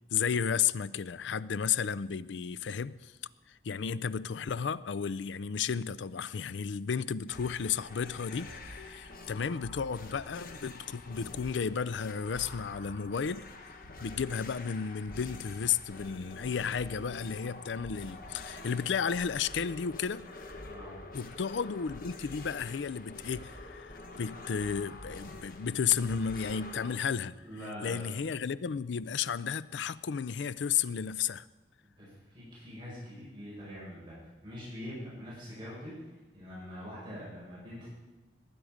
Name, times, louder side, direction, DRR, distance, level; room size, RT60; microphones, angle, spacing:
voice 1, 0.1-3.1 3.6-13.5 14.0-20.3 21.1-27.4 27.8-31.5, left 7 dB, 80° left, 0.4 m, -33 dB
sound 1, 7.3-27.0, left 2 dB, 50° left, 1.3 m, -47 dB
voice 2, 20.6-21.0 27.2-28.1 31.8-34.1 34.4-35.9 36.3-37.9, equal, 25° right, 5.3 m, -44 dB
19.5 x 9.3 x 5.0 m
head